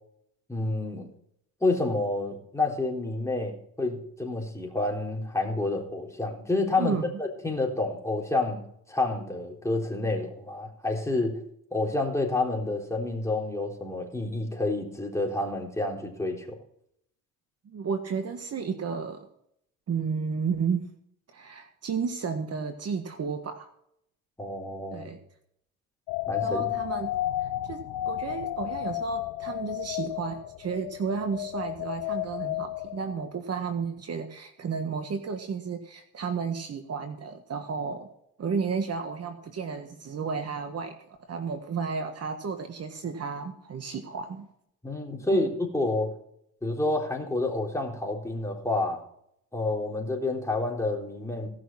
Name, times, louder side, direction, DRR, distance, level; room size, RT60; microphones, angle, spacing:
voice 1, 0.5-1.1 1.6-8.6 8.9-11.4 11.7-16.6 24.4-25.1 26.3-26.6 44.8-46.1 46.6-49.0 49.5-51.5, left 2 dB, 10° left, 0 dB, 4.0 m, -29 dB
voice 2, 6.8-7.1 17.6-19.3 19.9-20.8 21.3-23.7 24.9-25.2 26.4-27.1 27.4-38.1 38.4-40.9 41.3-44.5 45.3-45.4, right 5 dB, 40° right, 6 dB, 1.5 m, -32 dB
sound 1, 26.1-33.4, left 16 dB, 80° left, 0.8 m, -33 dB
17.5 x 6.4 x 5.6 m, 0.72 s
supercardioid pair, 85°, 36 cm